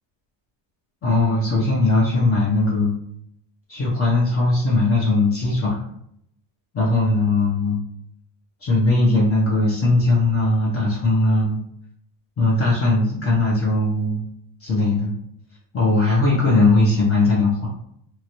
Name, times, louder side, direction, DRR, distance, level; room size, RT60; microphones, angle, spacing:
voice 1, 1.0-2.9 3.7-5.8 6.7-7.8 8.6-11.6 12.4-14.2 14.6-15.1 15.7-17.7, left 2 dB, 30° left, -5 dB, 0.8 m, -19 dB
2.9 x 2.4 x 2.9 m, 0.72 s
supercardioid pair, 110°, 49 cm